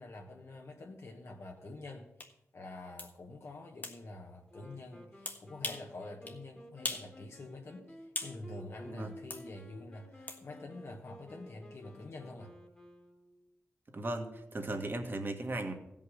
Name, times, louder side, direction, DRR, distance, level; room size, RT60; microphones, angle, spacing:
voice 1, 0.0-2.1 2.5-12.5, left 2 dB, 65° left, 1 dB, 1.3 m, -47 dB
sound 1, 2.2-2.3 3.0-3.1 3.8-4.0 5.3-5.9 6.3-6.4 6.8-7.1 7.5-8.4 9.3-9.5 10.3-10.4, left 2 dB, 40° left, 1.5 m, -39 dB
Wind instrument woodwind instrument, 4.5-13.5, equal, 15° left, 1.6 m, -54 dB
voice 2, 13.9-15.7, right 2 dB, 45° right, 4 dB, 1.7 m, -37 dB
16.0 x 5.6 x 6.5 m, 0.86 s
cardioid pair, 65°, 5 cm